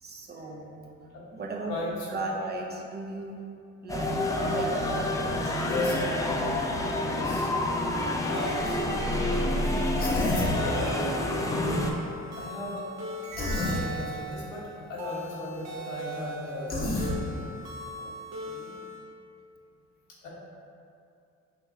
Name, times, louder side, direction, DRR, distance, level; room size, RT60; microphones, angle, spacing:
voice 1, 0.0-0.8 1.3-1.7 2.1-3.4 3.8-5.6 18.0-18.1 18.5-18.8, right 3 dB, 35° right, -1 dB, 0.6 m, -37 dB
voice 2, 1.7-2.5 5.6-5.9 6.9-7.5 7.9-9.5 10.2-11.9 12.4-12.8 13.4-17.5 20.2-20.3, left 2 dB, 85° left, -7 dB, 1.3 m, -36 dB
sound 1, 3.9-11.9, left 1 dB, 10° left, 0.4 m, -28 dB
sound 2, 8.3-19.0, right 1 dB, 60° right, 0.8 m, -40 dB
Human voice, 10.0-10.6 13.3-13.8 16.7-17.2, left 2 dB, 30° left, 0.8 m, -29 dB
5.9 x 2.8 x 2.7 m, 2.6 s
cardioid pair, 90°, 30 cm